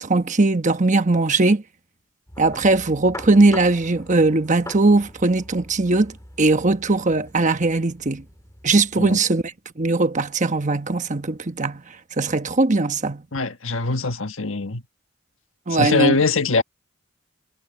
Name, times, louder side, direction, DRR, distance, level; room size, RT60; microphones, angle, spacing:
voice 1, 0.0-1.6 2.4-8.2 8.6-9.4 9.8-11.8 12.2-13.2 15.7-16.1, right 2 dB, 35° right, 1.1 m, -19 dB
sound 1, 2.3-9.2, left 1 dB, 15° left, 3.7 m, -42 dB
voice 2, 13.3-14.8 15.7-16.6, left 3 dB, 70° left, 1.6 m, -22 dB
head